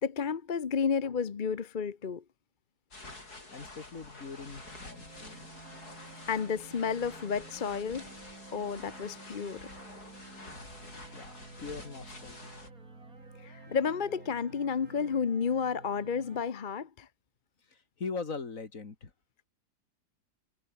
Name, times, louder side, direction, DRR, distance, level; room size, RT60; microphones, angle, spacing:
voice 1, 0.0-2.2 6.3-8.1 8.5-9.7 10.5-10.9 13.4-17.1, left 6 dB, 40° left, 0.9 m, -32 dB
sound 1, 2.9-12.7, left 2 dB, 75° left, 6.4 m, -49 dB
voice 2, 3.5-5.5 11.1-12.6 17.7-19.1, left 4 dB, 55° left, 2.8 m, -41 dB
sound 2, 4.6-16.4, right 3 dB, 65° right, 4.8 m, -51 dB
omnidirectional pair, 1.7 m